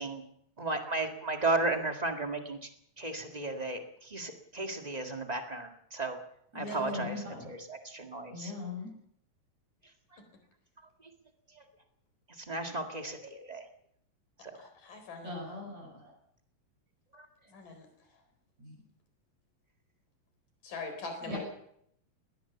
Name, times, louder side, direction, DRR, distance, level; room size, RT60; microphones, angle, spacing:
voice 1, 0.6-2.7 3.0-6.2 6.5-8.5 12.5-13.6 17.1-17.2, right 2 dB, 30° right, 4 dB, 0.7 m, -34 dB
voice 2, 6.5-7.5 8.3-8.9 15.2-16.1 18.6-18.8 21.3-21.4, left 2 dB, 50° right, -3 dB, 8.7 m, -39 dB
voice 3, 14.6-15.4 17.5-17.9 20.6-21.4, left 3 dB, 70° left, 6 dB, 5.7 m, -42 dB
21.0 x 18.5 x 7.1 m, 0.71 s
omnidirectional pair, 4.0 m